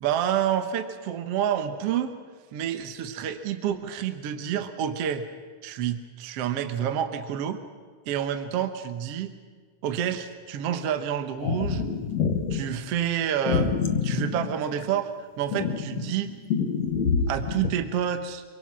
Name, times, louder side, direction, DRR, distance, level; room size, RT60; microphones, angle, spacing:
voice 1, 0.0-2.1 2.5-5.2 5.6-7.6 8.1-9.3 9.8-11.9 12.5-13.7 14.0-15.1 15.4-16.3 17.3-18.4, right 9 dB, 60° right, 9 dB, 1.9 m, -28 dB
sound 1, 11.4-12.6 13.4-15.0 15.5-17.7, left 6 dB, 60° left, 2.7 m, -26 dB
25.5 x 23.5 x 6.1 m, 1.5 s
omnidirectional pair, 3.6 m